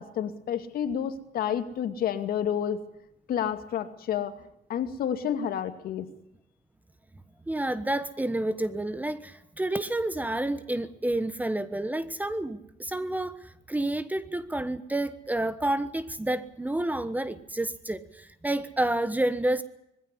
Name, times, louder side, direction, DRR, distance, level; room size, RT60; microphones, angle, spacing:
voice 1, 0.0-2.8 3.3-4.4 4.7-6.1, left 9 dB, 60° left, 8 dB, 2.5 m, -30 dB
voice 2, 7.5-19.6, right 1 dB, 10° right, 13 dB, 1.2 m, -29 dB
21.0 x 15.5 x 9.8 m, 0.82 s
cardioid pair, 110°, 17 cm